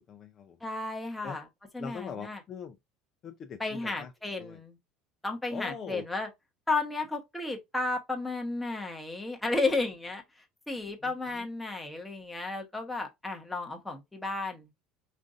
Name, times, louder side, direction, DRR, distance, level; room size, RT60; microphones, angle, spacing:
voice 1, 0.0-0.6 1.2-1.4 1.8-2.8 3.2-4.1 4.4-4.6 5.5-6.0 11.0-11.5, left 6 dB, 30° left, 0.5 m, -42 dB
voice 2, 0.6-1.5 1.7-2.4 3.6-4.8 5.2-6.3 6.7-10.2 10.7-14.7, left 3 dB, 5° left, 1.0 m, -33 dB
5.2 x 2.5 x 2.4 m
cardioid pair, 150°, 0 cm